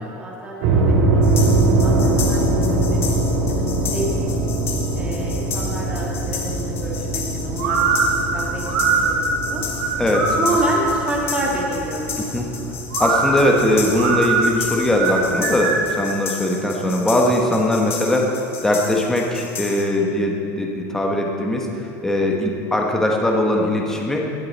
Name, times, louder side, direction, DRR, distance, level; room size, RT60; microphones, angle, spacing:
voice 1, 0.0-3.0 3.5-3.6 3.9-4.4 4.9-7.9 8.3-9.6 10.4-12.8, right 1 dB, 15° right, -4 dB, 1.8 m, -29 dB
sound 1, 0.6-15.8, right 2 dB, 65° right, 1.8 m, -23 dB
sound 2, 1.2-19.8, left 6 dB, 30° left, 1.1 m, -33 dB
sound 3, 7.6-10.9 12.9-16.0, right 4 dB, 80° right, 2.7 m, -22 dB
voice 2, 10.0-10.4 12.2-12.5 13.0-24.2, left 1 dB, 5° left, 0 dB, 1.2 m, -20 dB
19.0 x 6.6 x 4.1 m, 2.7 s
supercardioid pair, 160°, 9 cm